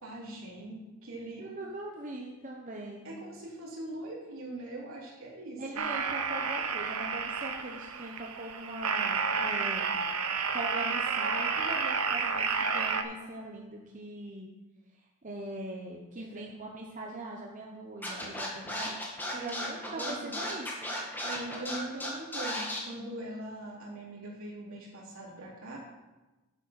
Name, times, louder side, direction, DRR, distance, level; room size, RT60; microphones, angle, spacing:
voice 1, 0.0-1.5 3.0-5.9 16.2-16.5 19.4-20.5 21.2-25.8, right 1 dB, 70° right, -4 dB, 2.9 m, -42 dB
voice 2, 1.4-3.1 5.6-9.9 10.3-14.5 15.2-19.0 19.3-21.0, right 2 dB, 35° right, -1 dB, 1.0 m, -41 dB
sound 1, 5.8-13.0, right 5 dB, 90° right, 0.8 m, -31 dB
Scratching (performance technique), 18.0-22.8, left 1 dB, 10° left, 1.8 m, -35 dB
9.0 x 7.0 x 5.8 m, 1.1 s
head